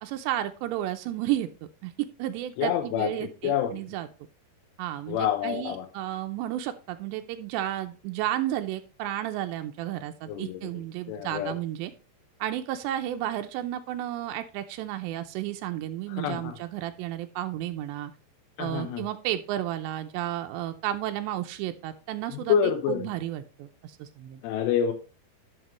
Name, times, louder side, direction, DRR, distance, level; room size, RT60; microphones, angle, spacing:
voice 1, 0.0-1.5 1.8-4.1 4.8-11.9 12.4-18.1 18.6-24.4, right 13 dB, 85° right, 7 dB, 2.9 m, -32 dB
voice 2, 2.6-3.7 5.1-5.9 10.3-10.6 11.1-11.6 16.1-16.6 18.6-19.0 22.5-23.1 24.4-24.9, left 9 dB, 85° left, 5 dB, 3.0 m, -27 dB
11.0 x 6.0 x 3.0 m, 0.33 s
omnidirectional pair, 4.9 m